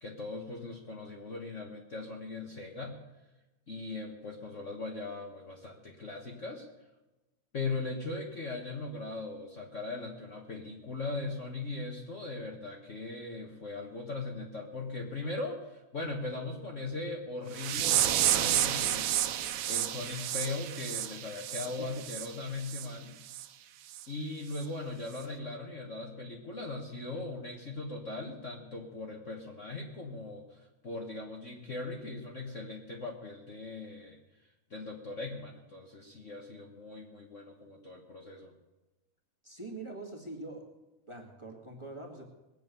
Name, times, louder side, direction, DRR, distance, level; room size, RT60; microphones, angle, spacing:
voice 1, 0.0-3.0 3.7-6.7 7.5-19.1 19.7-23.2 24.1-34.2 34.7-38.5, left 3 dB, 80° left, 0 dB, 0.6 m, -39 dB
sound 1, 17.5-22.3 22.6-22.9 23.3-23.5 23.9-24.1 24.5-24.6, right 12 dB, 75° right, 2.0 m, -30 dB
voice 2, 21.7-22.1 39.4-40.7 41.1-42.2, right 2 dB, 10° right, 0 dB, 1.5 m, -44 dB
21.0 x 8.5 x 6.9 m, 1.1 s
omnidirectional pair, 3.6 m